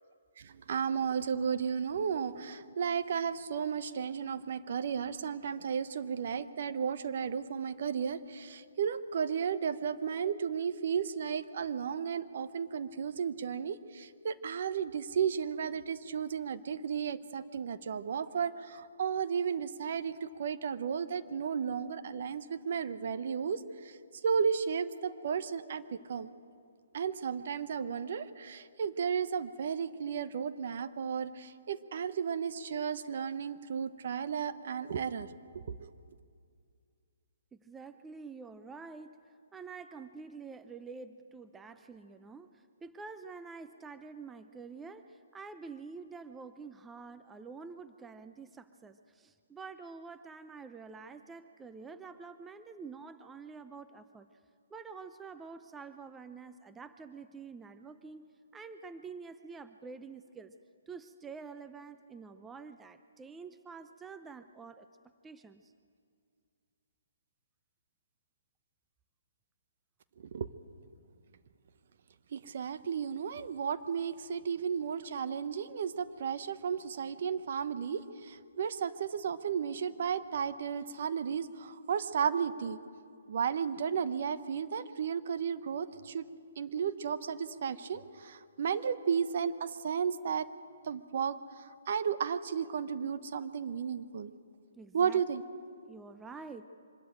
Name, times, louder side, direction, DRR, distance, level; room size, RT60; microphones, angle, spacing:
voice 1, 0.4-23.6 24.2-25.8 26.1-26.3 26.9-35.3 35.5-35.9 70.3-70.5 72.3-82.8 83.3-86.3 86.6-90.5 90.9-91.4 91.9-94.3 94.9-95.4, right 7 dB, 55° right, 13 dB, 0.9 m, -33 dB
voice 2, 37.6-39.2 39.5-42.5 42.8-54.3 54.7-58.3 58.5-60.5 60.9-64.9 65.2-65.7 94.8-95.2 95.8-96.7, right 4 dB, 10° right, 10 dB, 0.6 m, -47 dB
24.5 x 13.0 x 9.0 m, 2.3 s
hypercardioid pair, 150°, 0 cm